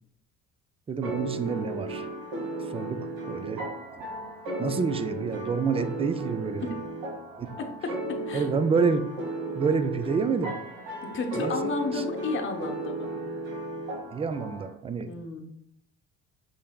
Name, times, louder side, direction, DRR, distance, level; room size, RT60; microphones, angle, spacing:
voice 1, 0.9-2.1 2.7-3.6 4.6-6.7 7.4-7.5 8.3-9.1 9.5-10.5 11.4-12.0 14.1-15.1, right 5 dB, 20° right, 10 dB, 0.3 m, -28 dB
sound 1, 1.0-14.7, right 1 dB, 85° right, 1.3 m, -35 dB
voice 2, 7.6-8.5 11.0-13.1 15.1-15.4, left 2 dB, 40° left, 3 dB, 0.8 m, -32 dB
5.5 x 3.3 x 2.3 m, 0.70 s
supercardioid pair, 85°, 32 cm